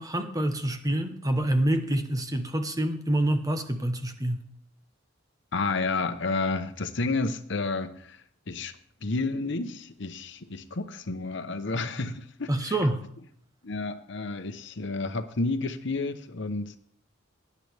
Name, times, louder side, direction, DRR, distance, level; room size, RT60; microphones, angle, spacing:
voice 1, 0.0-4.4 12.5-13.0, right 1 dB, 20° right, 1.0 m, -27 dB
voice 2, 5.5-8.7 9.0-12.8 13.6-16.8, left 3 dB, 65° left, 0.9 m, -31 dB
19.0 x 9.6 x 3.5 m
head